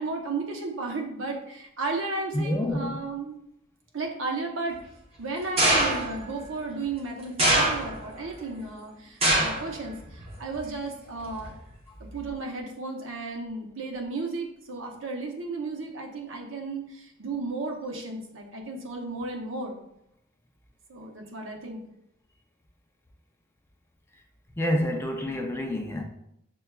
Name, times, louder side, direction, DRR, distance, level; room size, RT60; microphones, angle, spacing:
voice 1, 0.0-3.3 3.9-4.8 5.2-11.5 12.1-19.8 20.9-21.8, right 3 dB, 70° right, 0.7 m, -34 dB
voice 2, 2.3-3.0 24.6-26.0, left 1 dB, 10° left, 0.4 m, -28 dB
sound 1, 5.6-6.2 7.4-8.2 9.2-9.7 10.1-10.6 11.4-11.5, right 1 dB, 30° right, 0.8 m, -23 dB
6.7 x 2.3 x 2.2 m
head